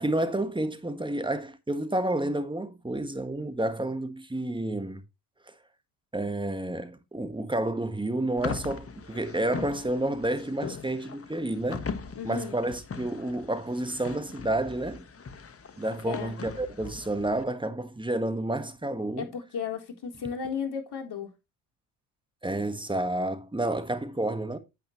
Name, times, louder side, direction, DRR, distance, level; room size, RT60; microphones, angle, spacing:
voice 1, 0.0-5.0 5.5-5.6 6.1-11.9 12.2-15.1 15.8-19.3 22.4-24.6, right 1 dB, 10° right, 1.5 m, -30 dB
sound 1, 8.4-17.4, left 5 dB, 30° left, 1.4 m, -40 dB
voice 2, 12.2-12.5 16.1-16.3 19.2-21.3, left 6 dB, 50° left, 3.7 m, -34 dB
9.3 x 8.3 x 3.1 m
hypercardioid pair, 65°, 50 cm